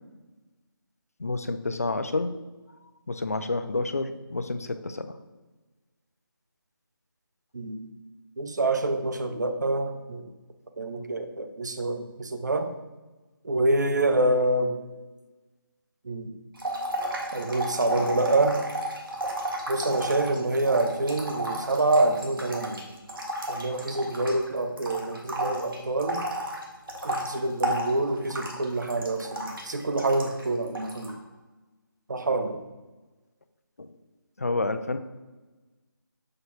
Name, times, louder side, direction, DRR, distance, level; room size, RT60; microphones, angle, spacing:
voice 1, 1.2-2.3 3.1-5.2 33.8-33.9 34.4-35.0, left 3 dB, 40° left, 10 dB, 0.4 m, -29 dB
voice 2, 8.4-10.2 10.8-12.7 13.4-14.8 16.0-16.3 17.3-18.6 19.7-22.8 23.5-26.2 27.0-31.2 32.1-32.6, right 2 dB, 50° right, 7 dB, 0.7 m, -26 dB
sound 1, 16.6-24.5 24.8-30.4 30.7-31.1, right 1 dB, 65° right, 1.4 m, -32 dB
6.5 x 3.0 x 5.4 m, 1.2 s
figure-of-eight pair, 170°, 12 cm